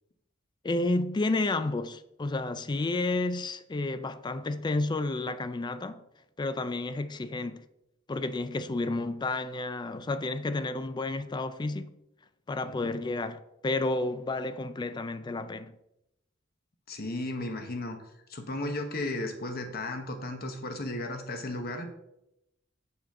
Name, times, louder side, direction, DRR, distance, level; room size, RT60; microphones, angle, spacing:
voice 1, 0.6-6.0 6.4-7.6 8.1-11.9 12.5-15.7, left 2 dB, 20° left, 0.4 m, -31 dB
voice 2, 16.9-18.0 18.3-21.9, left 2 dB, 50° left, 1.1 m, -34 dB
7.0 x 6.4 x 3.6 m
head